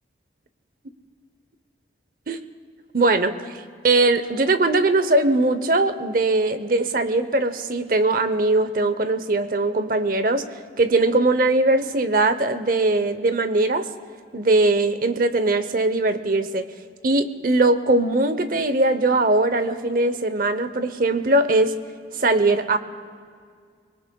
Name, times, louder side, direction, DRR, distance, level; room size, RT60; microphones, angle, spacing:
voice 1, 2.9-10.5 10.8-13.9 14.3-16.7 17.0-21.8 22.2-22.8, right 2 dB, 50° right, 11 dB, 0.8 m, -20 dB
24.0 x 22.0 x 2.3 m, 2.1 s
head